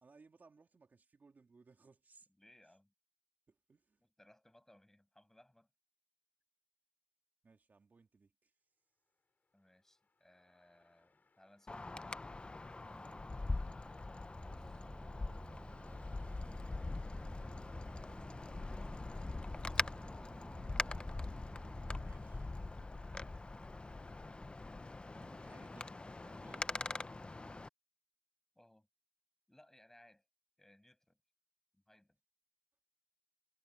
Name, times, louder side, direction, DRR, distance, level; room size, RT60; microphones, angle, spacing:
voice 1, 0.0-2.3 3.5-4.0 7.4-8.5 12.9-13.4 22.0-22.5 25.2-25.9 26.2-26.7, right 4 dB, 60° right, 2.6 m, -63 dB
voice 2, 2.4-2.9 4.0-5.7 9.5-12.0 14.1-14.9 23.4-23.7 28.6-28.9 29.5-30.3 30.6-31.2 31.7-32.2, left 1 dB, 10° left, 6.8 m, -67 dB
sound 1, 9.1-22.6, left 4 dB, 55° left, 6.4 m, -75 dB
Wind, 11.7-27.7, left 2 dB, 30° left, 0.7 m, -42 dB
sound 2, 14.3-22.0, right 1 dB, 10° right, 2.0 m, -53 dB
wide cardioid pair, 85°, 3 cm